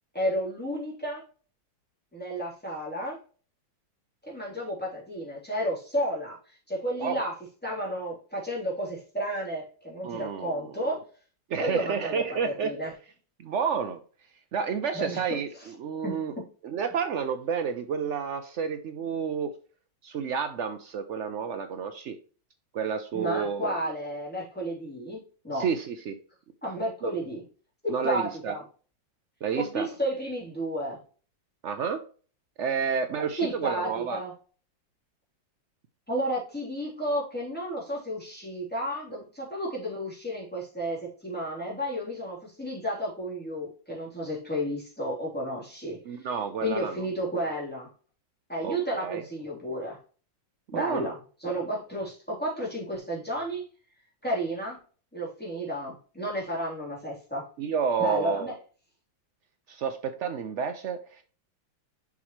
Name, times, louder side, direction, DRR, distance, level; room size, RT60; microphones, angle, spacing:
voice 1, 0.1-1.2 2.1-3.2 4.3-7.3 7.6-11.0 11.6-12.9 14.9-15.2 16.0-16.2 23.1-25.7 26.6-27.4 27.8-28.6 29.6-31.0 33.4-34.3 36.1-46.3 46.6-47.9 48.5-50.0 50.7-53.6 54.2-54.8 55.1-57.5 58.0-58.5, equal, 5° left, -5 dB, 3.2 m, -32 dB
voice 2, 10.0-10.7 11.5-12.7 13.4-14.0 14.5-16.3 16.6-19.5 20.0-22.2 22.7-23.7 25.5-26.2 27.0-27.2 27.9-28.5 29.4-29.9 31.6-32.0 32.6-34.2 46.1-47.0 48.6-49.2 50.7-51.1 57.6-58.5 59.7-61.2, right 6 dB, 80° right, 8 dB, 0.6 m, -30 dB
7.1 x 6.2 x 3.1 m, 0.39 s
omnidirectional pair, 2.0 m